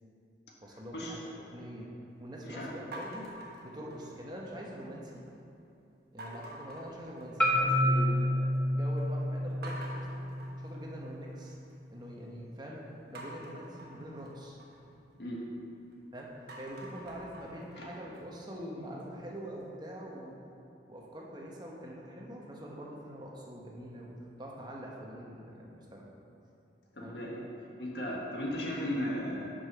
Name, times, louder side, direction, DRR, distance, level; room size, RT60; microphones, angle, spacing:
voice 1, 0.6-1.9 2.2-3.3 3.6-5.2 6.1-10.2 10.6-11.6 11.9-14.6 16.1-20.4 20.9-24.1 24.4-26.1 27.0-27.2, equal, 25° right, -2 dB, 1.0 m, -44 dB
sound 1, 2.9-4.4 4.8-5.3 6.2-7.7 8.0-8.6 9.0-9.1 9.6-11.7 13.1-15.9 16.3-19.2, right 1 dB, 55° right, 1.2 m, -48 dB
Marimba xylophone, 7.4-11.6, left 1 dB, 5° left, 0.8 m, -30 dB
voice 2, 26.9-27.4 27.8-29.5, equal, 65° left, -3 dB, 1.5 m, -36 dB
6.5 x 5.5 x 5.7 m, 2.8 s
head